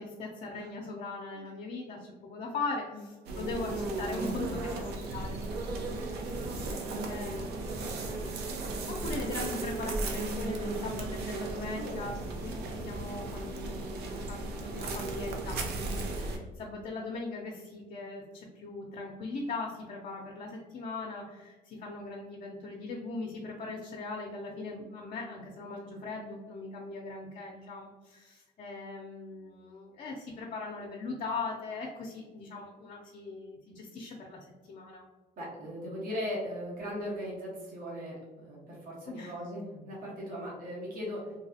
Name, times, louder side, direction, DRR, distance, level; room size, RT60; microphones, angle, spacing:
voice 1, 0.0-6.0 6.7-6.8 7.1-7.4 8.0-8.3 8.9-12.2 12.4-35.0 39.1-39.3, left 3 dB, 45° left, -1 dB, 0.5 m, -40 dB
sound 1, 3.3-16.4, right 2 dB, 75° right, 0.6 m, -35 dB
voice 2, 4.3-4.8 5.9-6.3 6.6-7.4 11.8-12.1 35.4-41.3, equal, 55° right, -4 dB, 1.1 m, -39 dB
3.1 x 2.3 x 2.7 m, 1.2 s
cardioid pair, 110°, 17 cm